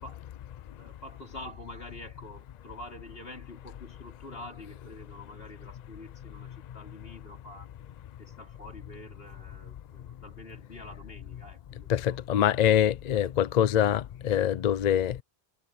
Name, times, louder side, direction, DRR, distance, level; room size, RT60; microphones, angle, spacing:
voice 1, 0.8-7.7 8.2-12.2, left 1 dB, 70° left, 3.8 m, -47 dB
voice 2, 11.9-15.2, left 10 dB, 55° left, 0.5 m, -24 dB
omnidirectional pair, 1.0 m